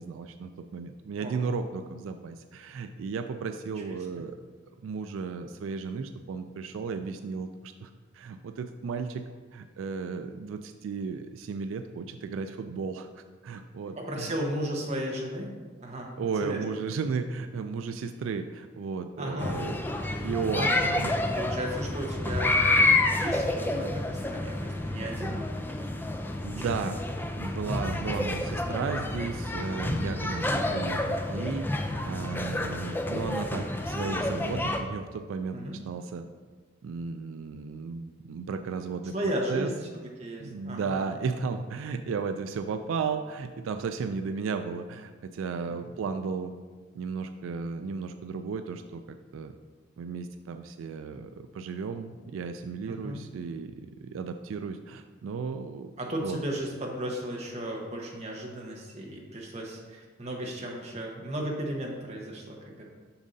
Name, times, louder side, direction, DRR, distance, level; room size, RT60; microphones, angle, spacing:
voice 1, 0.0-4.4 4.8-9.2 9.5-14.3 16.2-19.8 20.2-21.1 26.4-27.0 27.4-31.7 32.0-36.3 36.8-39.1 39.5-39.7 40.4-46.5 47.0-49.5 50.0-55.9 56.2-56.4, right 5 dB, 85° right, 8 dB, 0.3 m, -34 dB
voice 2, 14.0-15.5 15.8-16.6 19.2-19.6 19.9-20.0 20.6-25.6 26.6-26.7 27.9-28.3 35.5-35.8 39.1-41.1 45.7-46.0 52.9-53.2 56.0-62.8, right 1 dB, 35° right, -1 dB, 1.0 m, -35 dB
sound 1, 19.4-34.8, left 2 dB, 10° left, 0.3 m, -29 dB
7.0 x 6.4 x 2.6 m, 1.4 s
head